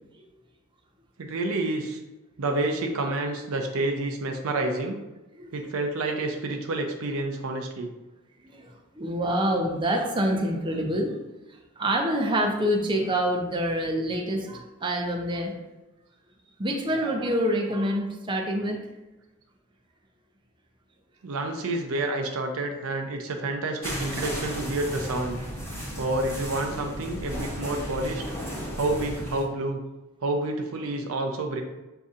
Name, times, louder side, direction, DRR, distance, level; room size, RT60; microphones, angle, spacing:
voice 1, 1.2-2.0 2.4-5.0 5.5-7.9 21.2-25.4 25.7-28.2 28.8-29.8 30.2-31.6, right 2 dB, 75° right, 3 dB, 0.5 m, -29 dB
voice 2, 8.4-11.2 11.5-15.6 16.6-18.8, equal, 20° right, 2 dB, 0.5 m, -26 dB
sound 1, 23.8-29.4, equal, 10° left, 0.8 m, -34 dB
6.6 x 2.7 x 2.4 m, 1.1 s
head